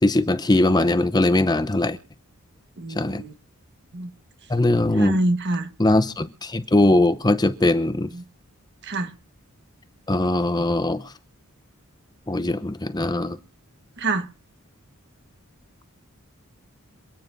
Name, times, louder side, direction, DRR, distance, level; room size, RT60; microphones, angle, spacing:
voice 1, 0.0-2.0 3.0-3.2 4.5-5.2 5.8-8.1 10.1-11.1 12.3-13.4, left 2 dB, 20° left, 0.7 m, -20 dB
voice 2, 2.8-3.3 3.9-4.1 5.0-5.7 8.9-9.1 14.0-14.3, right 2 dB, 55° right, 1.4 m, -25 dB
27.5 x 9.6 x 2.7 m
head